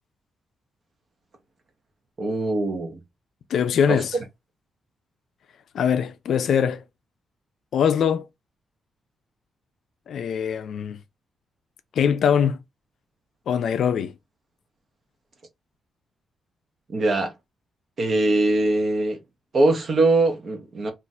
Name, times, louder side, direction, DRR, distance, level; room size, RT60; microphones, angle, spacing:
voice 1, 2.2-3.0 3.9-4.0 16.9-17.3 18.0-19.2 19.5-20.9, right 2 dB, 40° right, 0.7 m, -22 dB
voice 2, 3.5-4.2 5.7-6.8 7.7-8.2 10.1-11.0 12.0-12.6 13.5-14.1, left 8 dB, 65° left, 0.4 m, -22 dB
2.5 x 2.5 x 4.0 m
wide cardioid pair, 160°, 0 cm